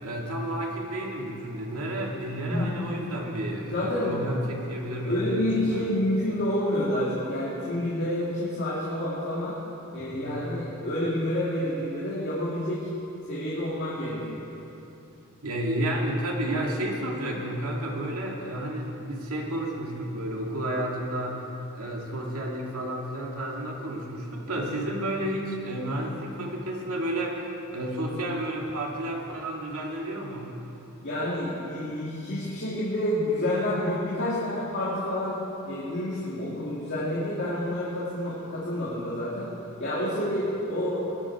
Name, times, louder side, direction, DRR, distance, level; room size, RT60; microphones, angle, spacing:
voice 1, 0.0-5.8 10.0-10.4 15.4-21.5 21.7-30.5, right 1 dB, 80° right, -1 dB, 2.2 m, -31 dB
voice 2, 3.6-4.1 5.0-9.6 9.9-12.9 13.2-14.5 31.0-35.4 35.6-39.5 39.8-41.1, left 1 dB, 55° left, -9 dB, 2.5 m, -29 dB
19.5 x 10.5 x 4.7 m, 2.9 s
head